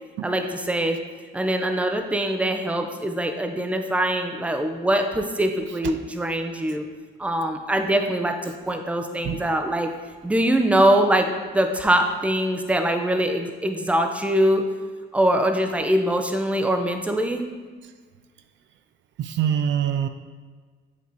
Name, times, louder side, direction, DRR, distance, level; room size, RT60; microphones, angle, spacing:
voice 1, 0.2-1.0 1.3-6.9 7.2-9.9 10.2-11.3 11.5-14.6 15.1-17.4, right 1 dB, 5° right, 5 dB, 0.6 m, -23 dB
voice 2, 19.2-20.1, right 9 dB, 70° right, 9 dB, 0.4 m, -23 dB
8.2 x 2.8 x 4.6 m, 1.5 s
cardioid pair, 90°, 20 cm